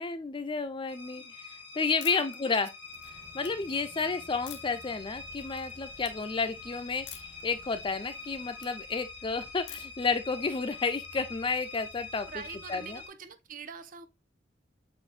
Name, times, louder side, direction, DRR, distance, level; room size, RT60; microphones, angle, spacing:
voice 1, 0.0-2.7 3.1-12.3 12.7-13.0, left 4 dB, 25° left, 0.5 m, -31 dB
sound 1, 0.9-13.1, left 3 dB, 85° left, 1.8 m, -45 dB
sound 2, 2.0-2.4 2.8-3.5 4.5-4.9 5.3-5.7 6.0-6.1 7.1-7.4 7.8-8.7 9.7-10.1, left 10 dB, 70° left, 0.7 m, -46 dB
voice 2, 2.0-2.6 12.3-14.1, right 6 dB, 45° right, 0.5 m, -44 dB
sound 3, 2.8-8.9, equal, 75° right, 2.4 m, -56 dB
6.3 x 2.6 x 2.4 m
head